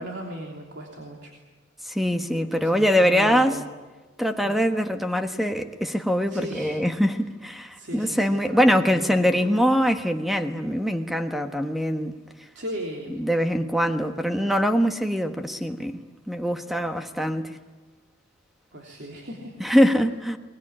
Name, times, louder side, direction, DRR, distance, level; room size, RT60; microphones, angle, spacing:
voice 1, 0.0-1.3 2.5-3.7 4.4-4.6 6.3-6.7 7.7-9.6 12.5-13.2 18.7-19.6, equal, 65° right, 0 dB, 3.3 m, -37 dB
voice 2, 1.9-3.5 4.2-12.1 13.2-16.0 16.3-17.5 19.6-20.4, equal, ahead, 6 dB, 1.3 m, -23 dB
22.0 x 21.0 x 10.0 m, 1.3 s
head